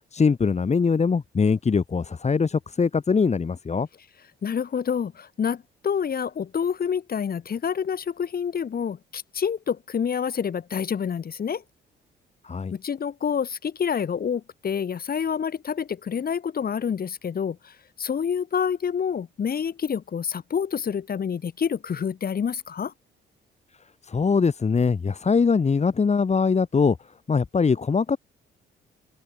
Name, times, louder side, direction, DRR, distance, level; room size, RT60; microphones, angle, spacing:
voice 1, 0.1-3.9 12.4-12.7 24.0-27.0 27.3-28.2, left 5 dB, 35° left, 3.1 m, -22 dB
voice 2, 4.4-11.6 12.7-17.7 18.0-22.9, left 7 dB, 50° left, 5.6 m, -28 dB
open air
cardioid pair, 90°, 20 cm